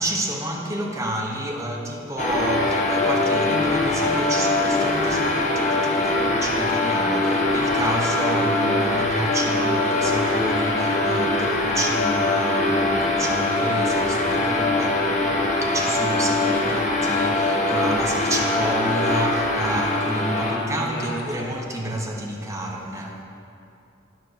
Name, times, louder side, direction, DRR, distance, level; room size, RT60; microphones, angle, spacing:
voice 1, 0.0-15.1 15.6-23.2, right 1 dB, 15° right, -1 dB, 1.1 m, -29 dB
sound 1, 2.2-20.6, left 2 dB, 40° left, 1.3 m, -22 dB
voice 2, 20.3-21.6, left 1 dB, 75° left, -2 dB, 1.7 m, -32 dB
10.5 x 5.4 x 6.7 m, 2.6 s
head